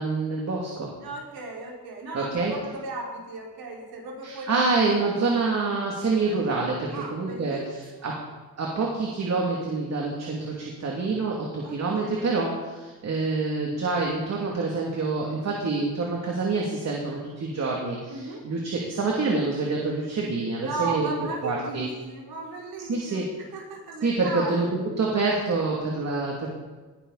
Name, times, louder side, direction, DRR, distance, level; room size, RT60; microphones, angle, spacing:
voice 1, 0.0-0.9 2.1-2.5 4.2-7.6 8.0-8.1 8.6-21.1 21.4-21.9 22.9-23.3 24.0-24.7 25.0-26.5, right 3 dB, 45° right, -2 dB, 2.9 m, -26 dB
voice 2, 1.0-5.0 6.9-8.3 11.6-12.3 18.1-18.4 20.6-24.7, right 3 dB, 70° right, -2 dB, 5.0 m, -36 dB
19.5 x 11.5 x 4.3 m, 1.3 s
cardioid pair, 115°, 38 cm